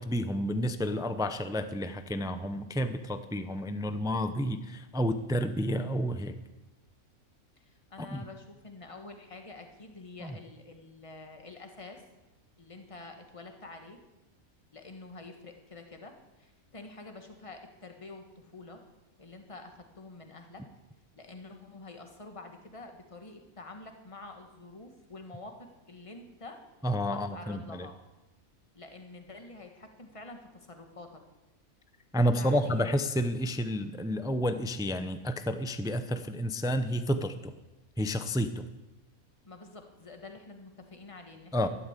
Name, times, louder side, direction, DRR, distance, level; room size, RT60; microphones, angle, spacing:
voice 1, 0.0-6.4 8.1-8.2 10.2-10.4 26.8-27.9 32.1-37.5 38.0-38.6 41.5-41.7, equal, 5° right, 10 dB, 0.4 m, -30 dB
voice 2, 7.6-12.0 12.6-14.0 14.7-18.8 19.2-20.6 21.2-26.6 27.1-28.0 28.7-31.2 32.2-33.0 39.4-41.7, left 2 dB, 20° left, 4 dB, 1.6 m, -47 dB
12.5 x 12.0 x 8.3 m, 1.0 s
omnidirectional pair, 1.6 m